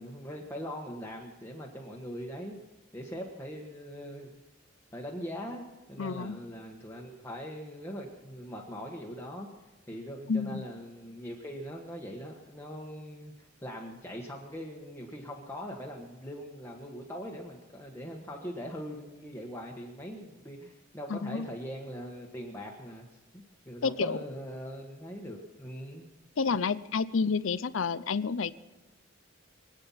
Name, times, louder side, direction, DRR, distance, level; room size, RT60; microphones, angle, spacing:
voice 1, 0.0-2.6 2.9-4.4 4.9-9.5 9.9-23.1 23.3-26.1, equal, 10° left, -1 dB, 1.4 m, -41 dB
voice 2, 6.0-6.4 10.3-10.7 21.1-21.5 23.8-24.2 26.4-28.5, left 5 dB, 75° left, 15 dB, 0.6 m, -29 dB
25.0 x 9.0 x 5.7 m, 1.1 s
head